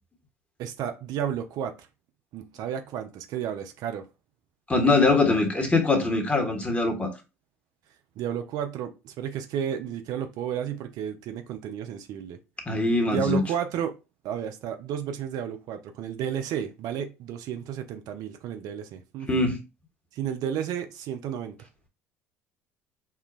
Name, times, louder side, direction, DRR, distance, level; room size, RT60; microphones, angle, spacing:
voice 1, 0.6-1.7 2.3-4.1 8.2-12.4 13.1-13.9 14.2-19.3 20.1-21.5, right 9 dB, 60° right, 0.5 m, -32 dB
voice 2, 4.7-7.1 12.7-13.4 19.3-19.6, left 3 dB, 20° left, 1.3 m, -22 dB
5.6 x 2.2 x 2.4 m
hypercardioid pair, 65°, 8 cm